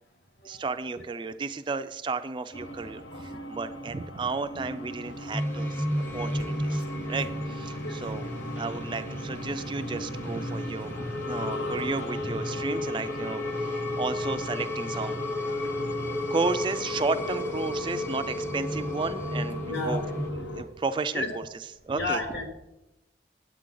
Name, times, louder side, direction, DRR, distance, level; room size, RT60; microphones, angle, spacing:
voice 1, 0.4-5.9 6.1-6.8 7.1-15.2 16.3-20.0 20.3-22.2, right 4 dB, 25° right, 10 dB, 0.3 m, -33 dB
sound 1, 2.5-20.6, left 1 dB, 90° left, 0.9 m, -38 dB
sound 2, 5.3-20.3, left 1 dB, 10° left, 0.6 m, -33 dB
voice 2, 19.7-20.1 21.1-21.4 21.9-22.5, left 2 dB, 65° left, 3 dB, 1.8 m, -33 dB
8.7 x 8.2 x 3.8 m, 0.90 s
head